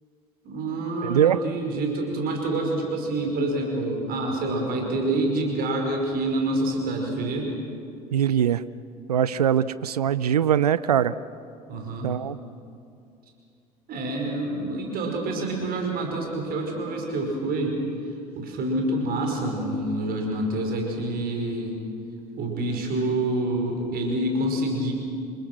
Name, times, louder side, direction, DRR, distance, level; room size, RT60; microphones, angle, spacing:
voice 1, 0.4-7.5 11.7-12.1 13.9-17.8 18.3-21.8 22.4-24.9, right 1 dB, 50° right, 2 dB, 5.4 m, -27 dB
voice 2, 1.0-1.4 8.1-8.6 9.1-11.1 12.0-12.4, right 9 dB, 85° right, 17 dB, 0.5 m, -22 dB
29.0 x 22.5 x 6.2 m, 2.5 s
hypercardioid pair, 60°, 19 cm